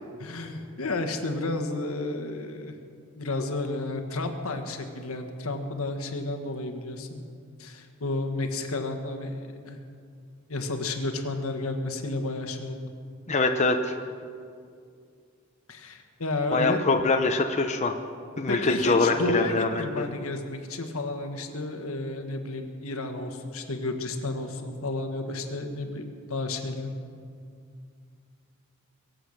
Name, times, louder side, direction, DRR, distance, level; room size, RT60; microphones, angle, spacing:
voice 1, 0.2-2.7 3.2-7.2 7.6-9.8 10.5-12.9 15.7-16.8 18.5-26.9, left 2 dB, 80° left, 5 dB, 1.5 m, -32 dB
voice 2, 13.3-13.9 16.5-17.9 18.4-20.0, left 3 dB, 35° left, 4 dB, 0.7 m, -24 dB
22.5 x 7.9 x 6.6 m, 2.3 s
head